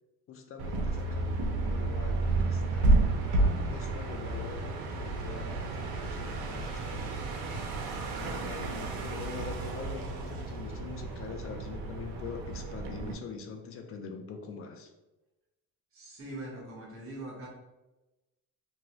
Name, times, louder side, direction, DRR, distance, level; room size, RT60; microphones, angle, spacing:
voice 1, 0.3-2.9 3.7-7.3 8.2-14.9, left 5 dB, 40° left, 4 dB, 0.4 m, -44 dB
sound 1, 0.6-13.1, right 2 dB, 85° right, 0.7 m, -31 dB
voice 2, 15.9-17.5, right 1 dB, 35° right, -3 dB, 1.2 m, -42 dB
2.7 x 2.6 x 3.0 m, 1.0 s
cardioid pair, 140°, 36 cm